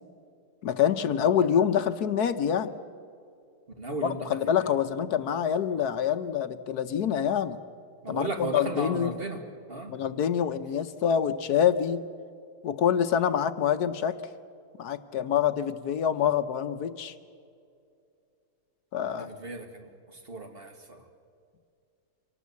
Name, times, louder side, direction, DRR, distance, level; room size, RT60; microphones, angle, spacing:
voice 1, 0.6-2.7 4.0-7.6 8.1-9.1 9.9-12.0 12.6-14.2 14.8-17.1 18.9-19.3, left 8 dB, 65° left, 10 dB, 1.3 m, -26 dB
voice 2, 3.8-4.5 8.0-9.4 9.7-9.9 19.1-19.9 20.3-21.0, right 2 dB, 30° right, 5 dB, 2.1 m, -35 dB
25.0 x 18.5 x 8.3 m, 2.4 s
omnidirectional pair, 1.9 m